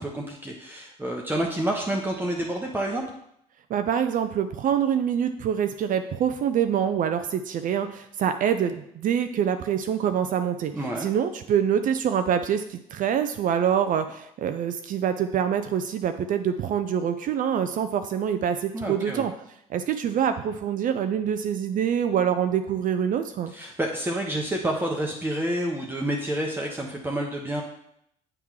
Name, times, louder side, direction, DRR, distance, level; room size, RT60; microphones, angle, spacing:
voice 1, 0.0-3.0 10.7-11.1 18.7-19.2 23.5-27.6, right 1 dB, 10° right, -1 dB, 1.0 m, -29 dB
voice 2, 3.7-10.7 11.0-19.3 19.7-23.5, right 8 dB, 55° right, 8 dB, 0.5 m, -25 dB
7.8 x 3.7 x 4.7 m, 0.75 s
hypercardioid pair, 65°, 17 cm